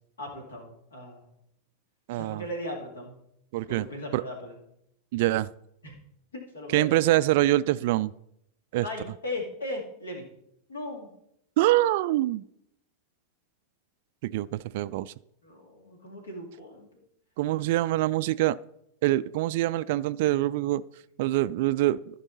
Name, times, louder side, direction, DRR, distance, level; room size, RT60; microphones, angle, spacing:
voice 1, 0.2-1.3 2.1-3.1 3.7-4.6 5.8-6.0 6.3-7.0 8.8-10.3 10.7-11.1 15.4-16.9, left 1 dB, 70° left, 2.5 m, -38 dB
voice 2, 2.1-2.4 3.5-3.9 4.1-4.2 5.1-5.5 6.7-8.1 8.7-8.8 11.6-12.4 14.2-15.1 17.4-18.6 19.0-20.8 21.2-22.0, right 16 dB, 50° right, 0.3 m, -24 dB
14.0 x 5.4 x 4.1 m
figure-of-eight pair, 90°, 0 cm